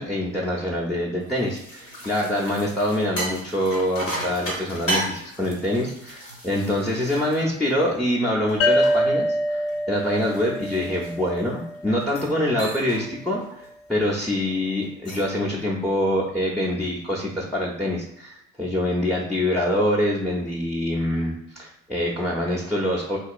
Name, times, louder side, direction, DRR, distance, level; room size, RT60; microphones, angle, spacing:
voice 1, 0.0-13.6 13.9-23.2, left 1 dB, ahead, -3 dB, 0.4 m, -25 dB
sound 1, 1.2-8.0 8.5-11.5 12.0-12.3 12.6-13.1 13.4-13.7 14.8-15.4, right 1 dB, 85° left, 0.8 m, -34 dB
sound 2, 8.6-12.1, equal, 50° left, 0.5 m, -25 dB
2.9 x 2.8 x 2.3 m, 0.76 s
figure-of-eight pair, 60°, 39 cm